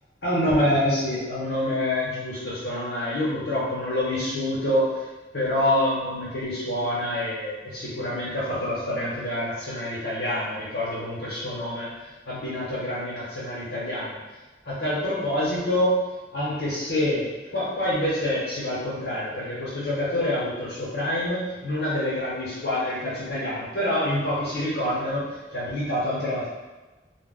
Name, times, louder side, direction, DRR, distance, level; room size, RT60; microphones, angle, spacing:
voice 1, 0.2-5.0 5.3-14.2 14.6-15.9 16.3-26.5, left 1 dB, 80° left, -10 dB, 1.0 m, -27 dB
2.3 x 2.1 x 3.7 m, 1.2 s
head